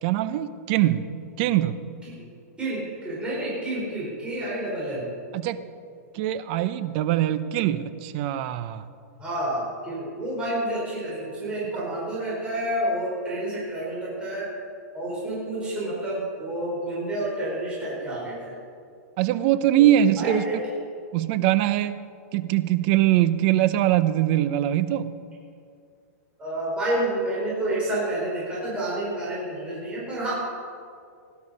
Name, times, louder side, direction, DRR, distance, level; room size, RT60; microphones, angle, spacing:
voice 1, 0.0-1.1 1.4-1.8 5.3-5.6 6.1-8.8 11.7-11.8 19.2-20.4 21.1-22.0 22.3-25.1, right 12 dB, 40° right, 13 dB, 0.7 m, -22 dB
voice 2, 2.6-5.1 9.2-14.5 14.9-18.5 20.2-20.5 26.4-30.3, right 1 dB, 10° right, -7 dB, 4.5 m, -29 dB
17.5 x 11.5 x 5.5 m, 2.3 s
hypercardioid pair, 155°, 9 cm